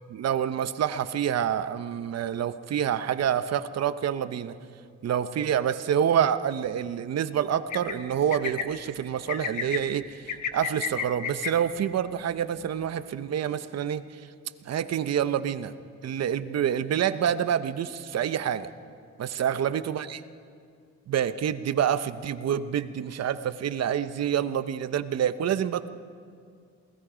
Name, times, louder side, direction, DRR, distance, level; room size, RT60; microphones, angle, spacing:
voice 1, 0.1-4.5 5.0-14.2 14.7-15.7 16.0-18.7 19.2-20.2 21.1-25.9, right 9 dB, 55° right, 12 dB, 0.9 m, -27 dB
sound 1, 7.7-7.9 8.3-8.6 9.3-9.8 10.3-11.5, left 8 dB, 75° left, 1.5 m, -30 dB
27.5 x 19.0 x 5.1 m, 2.2 s
cardioid pair, 90°, 30 cm